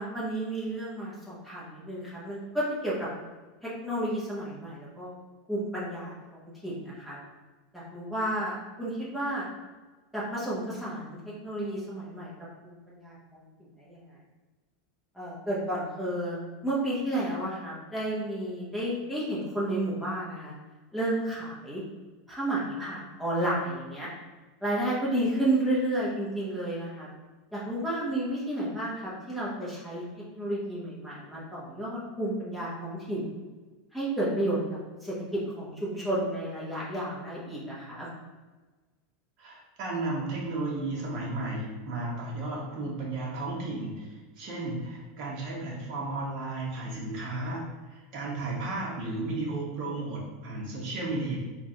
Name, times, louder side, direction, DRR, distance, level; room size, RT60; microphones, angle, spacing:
voice 1, 0.0-3.1 3.6-5.1 5.5-7.2 7.7-9.4 10.1-12.3 12.6-14.2 15.1-20.5 20.9-21.8 22.3-24.1 24.6-27.1 27.5-30.0 30.3-33.2 33.9-34.6 35.0-38.1, right 1 dB, ahead, -9 dB, 1.0 m, -32 dB
voice 2, 39.4-47.6 48.1-51.4, right 2 dB, 40° right, -3 dB, 1.0 m, -33 dB
3.2 x 2.5 x 4.2 m, 1.3 s
supercardioid pair, 165°, 0 cm